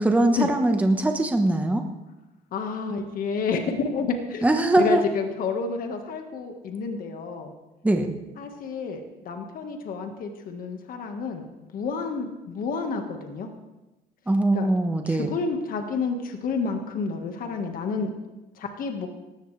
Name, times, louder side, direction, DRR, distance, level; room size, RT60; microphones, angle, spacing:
voice 1, 0.0-1.8 4.4-5.0 7.8-8.1 14.3-15.3, right 2 dB, 10° right, 4 dB, 1.2 m, -21 dB
voice 2, 2.5-4.5 4.8-7.5 8.4-11.5 11.7-13.5 14.5-14.7 15.1-18.1 18.6-19.1, left 4 dB, 55° left, 4 dB, 1.6 m, -30 dB
18.5 x 15.0 x 3.4 m, 1.0 s
cardioid pair, 110°, 17 cm